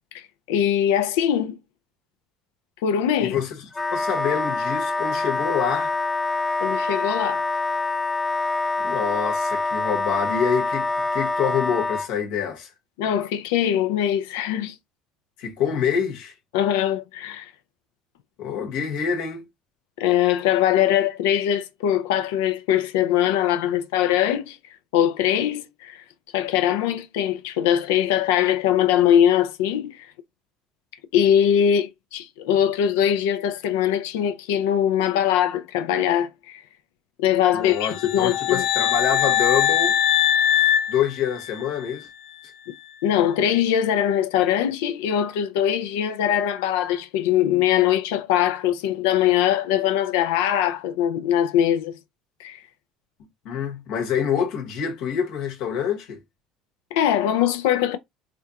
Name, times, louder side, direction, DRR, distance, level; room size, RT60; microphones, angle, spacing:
voice 1, 0.1-1.6 2.8-3.4 6.6-7.5 13.0-14.8 16.5-17.5 20.0-24.6 24.9-26.0 26.3-30.1 31.1-36.6 37.2-38.7 43.0-52.0 52.4-52.6 56.9-58.0, left 10 dB, 90° left, 0.5 m, -22 dB
Wind instrument woodwind instrument, 3.7-12.1, left 3 dB, 10° left, 0.4 m, -25 dB
voice 2, 3.9-5.9 8.8-12.7 15.4-16.3 18.4-19.5 37.5-40.0 40.9-42.1 53.4-56.2, left 7 dB, 75° left, 1.1 m, -26 dB
sound 1, 37.8-41.8, left 10 dB, 55° left, 0.8 m, -22 dB
3.4 x 2.5 x 2.9 m
supercardioid pair, 105°, 0 cm